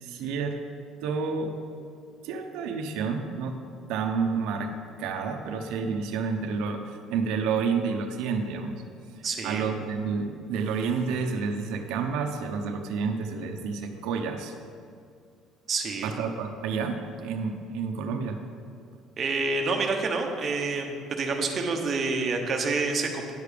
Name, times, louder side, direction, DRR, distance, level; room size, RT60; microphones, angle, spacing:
voice 1, 0.0-0.6 1.0-1.5 2.2-3.6 3.9-4.7 5.0-8.8 9.4-14.5 16.0-18.4, right 5 dB, 75° right, 5 dB, 0.8 m, -29 dB
voice 2, 9.2-9.6 15.7-16.1 19.2-23.3, right 3 dB, 30° right, 2 dB, 0.9 m, -28 dB
9.9 x 6.8 x 5.0 m, 2.4 s
cardioid pair, 175°, 0 cm